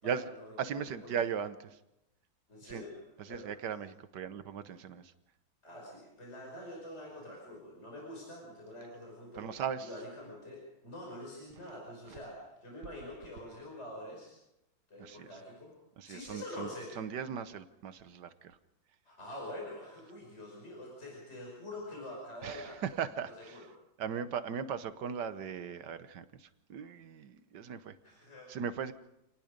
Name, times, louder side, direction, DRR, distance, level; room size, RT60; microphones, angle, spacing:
voice 1, 0.0-1.2 2.5-2.9 3.3-3.8 5.6-14.4 14.9-15.7 16.0-17.0 19.0-22.8 23.2-23.7 28.0-28.5, left 1 dB, 35° left, -2 dB, 5.9 m, -46 dB
voice 2, 0.6-1.8 2.7-2.8 3.2-5.1 9.4-9.9 12.1-12.2 15.0-15.3 16.0-16.7 17.0-18.6 22.4-23.7 24.0-28.0 28.5-28.9, right 7 dB, 65° right, 12 dB, 1.5 m, -38 dB
27.5 x 19.0 x 5.2 m, 0.89 s
omnidirectional pair, 2.1 m